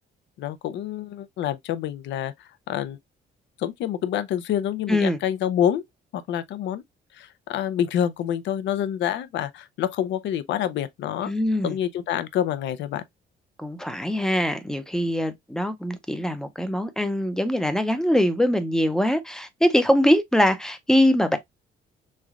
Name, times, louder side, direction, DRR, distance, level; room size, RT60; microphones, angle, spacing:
voice 1, 0.4-3.0 3.6-5.8 6.1-6.8 7.1-11.3 11.6-13.0, left 10 dB, 75° left, 0.5 m, -27 dB
voice 2, 11.2-11.7 13.6-21.4, equal, 5° left, 0.4 m, -22 dB
3.7 x 3.2 x 2.3 m
cardioid pair, 155°, 19 cm